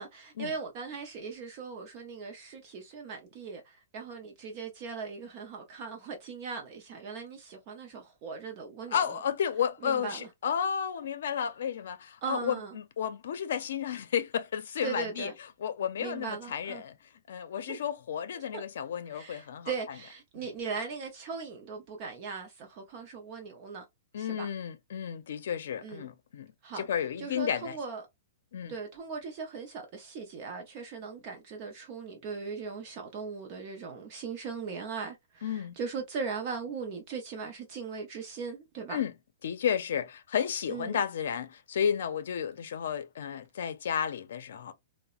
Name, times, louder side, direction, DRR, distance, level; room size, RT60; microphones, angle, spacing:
voice 1, 0.0-9.1 9.8-10.3 12.2-12.7 14.8-15.3 16.0-16.8 17.7-17.8 19.1-23.8 24.2-24.5 25.8-26.1 26.6-26.9 27.2-28.1 28.7-39.0 40.7-41.0, right 5 dB, 30° right, 0.5 m, -39 dB
voice 2, 8.9-15.3 15.6-17.0 17.3-19.7 20.4-20.5 24.1-27.8 28.5-28.8 35.4-35.8 38.9-39.1 39.4-44.7, left 8 dB, 60° left, 0.5 m, -32 dB
3.8 x 2.0 x 2.3 m
hypercardioid pair, 175°, 0 cm